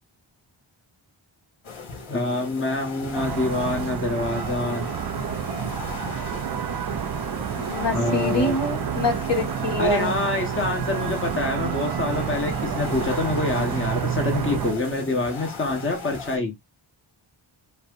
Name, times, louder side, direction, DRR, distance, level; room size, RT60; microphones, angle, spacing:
sound 1, 1.6-16.4, left 4 dB, 75° left, 1.4 m, -37 dB
voice 1, 2.1-4.9 7.9-8.6 9.8-16.5, left 2 dB, 25° left, 1.0 m, -26 dB
sound 2, 3.1-14.7, right 9 dB, 50° right, 0.4 m, -29 dB
voice 2, 7.6-10.2, left 2 dB, 55° left, 1.5 m, -25 dB
5.4 x 2.1 x 2.4 m
wide cardioid pair, 60°, 49 cm